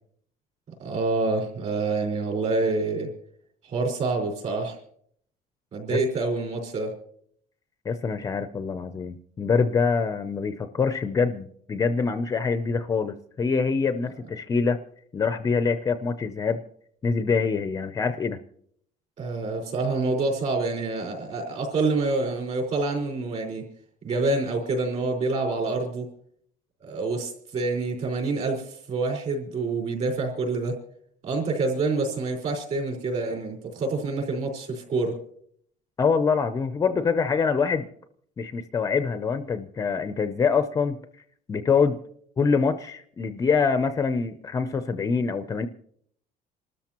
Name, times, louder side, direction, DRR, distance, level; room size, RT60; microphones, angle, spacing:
voice 1, 0.8-3.1 3.6-4.8 5.7-6.9 19.2-23.7 24.0-26.1 26.8-30.8 31.2-35.1, right 3 dB, 40° right, 2 dB, 4.7 m, -27 dB
voice 2, 7.9-14.8 15.1-16.6 17.0-18.4 36.0-37.9 38.4-41.0 41.5-42.0 42.4-45.7, left 5 dB, 20° left, 10 dB, 0.5 m, -25 dB
27.5 x 13.0 x 2.9 m, 0.65 s
cardioid pair, 170°, 17 cm